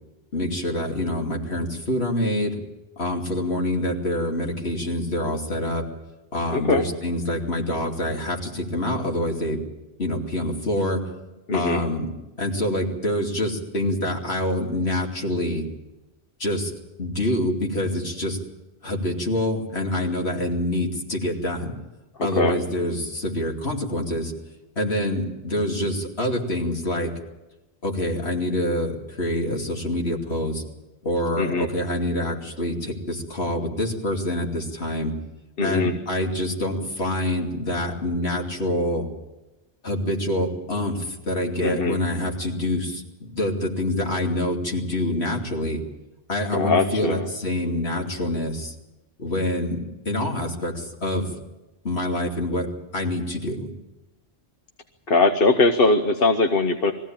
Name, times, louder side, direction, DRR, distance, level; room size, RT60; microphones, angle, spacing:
voice 1, 0.3-2.6 3.0-5.8 6.3-9.6 10.0-11.0 11.5-12.1 12.4-15.7 16.4-16.7 17.0-18.4 18.8-21.7 22.2-24.3 24.8-27.1 27.8-30.6 31.0-35.2 35.6-39.1 39.8-45.8 46.3-48.7 49.2-51.3 51.8-52.7 52.9-53.7, left 1 dB, 80° left, 1 dB, 3.0 m, -26 dB
voice 2, 6.5-6.8 11.5-11.8 22.2-22.6 31.4-31.7 35.6-35.9 41.6-42.0 46.5-47.3 55.1-56.9, left 3 dB, 65° left, 6 dB, 1.2 m, -21 dB
21.5 x 15.5 x 8.9 m, 1.0 s
omnidirectional pair, 1.1 m